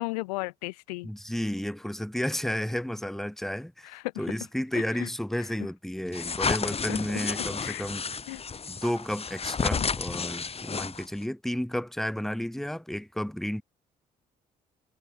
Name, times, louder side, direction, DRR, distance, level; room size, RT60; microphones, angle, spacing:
voice 1, 0.0-1.1 3.8-4.0 4.7-5.1 6.9-7.2 7.6-7.9 8.3-8.4 9.8-9.9, left 24 dB, 90° left, 0.7 m, -35 dB
voice 2, 1.0-8.0 8.7-13.6, equal, ahead, 1.0 m, -32 dB
sound 1, 6.1-11.2, left 5 dB, 30° left, 0.9 m, -31 dB
hypercardioid pair, 50°, 19 cm